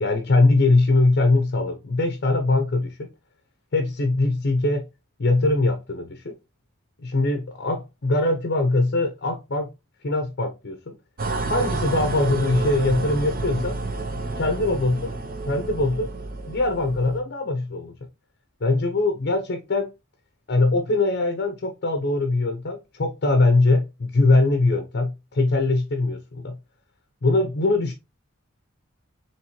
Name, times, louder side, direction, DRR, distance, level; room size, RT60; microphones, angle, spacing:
voice 1, 0.0-3.1 3.7-4.8 5.2-6.4 7.0-9.7 10.0-11.0 11.5-13.8 14.4-15.1 15.5-16.1 16.5-17.9 18.6-19.9 20.5-26.6 27.2-27.9, left 2 dB, 55° left, 0.6 m, -22 dB
sound 1, 11.2-17.2, right 3 dB, 45° right, 0.6 m, -29 dB
4.3 x 3.0 x 2.9 m
head